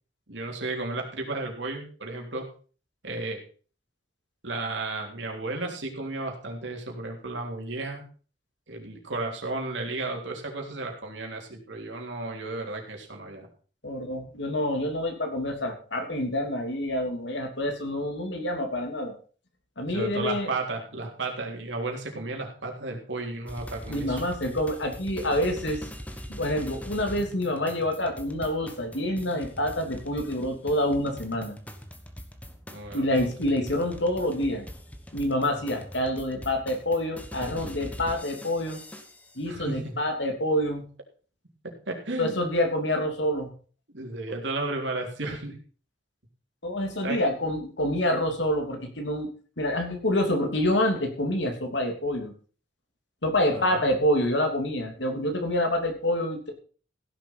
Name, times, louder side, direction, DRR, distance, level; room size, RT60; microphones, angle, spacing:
voice 1, 0.3-2.5 3.0-3.4 4.4-8.0 8.7-13.5 19.9-24.3 32.7-33.3 39.5-39.9 41.6-42.5 43.9-45.6 47.0-47.2 53.5-53.9, right 2 dB, 75° right, 1 dB, 3.6 m, -33 dB
voice 2, 13.8-19.1 19.8-20.5 23.9-25.9 26.3-31.5 32.9-34.6 35.1-38.8 39.3-40.8 42.2-43.5 46.6-49.3 49.6-52.3 53.2-56.5, left 1 dB, 75° left, 3 dB, 3.1 m, -27 dB
sound 1, 23.5-39.4, equal, 10° left, 1.3 m, -42 dB
16.0 x 7.3 x 5.7 m, 0.40 s
head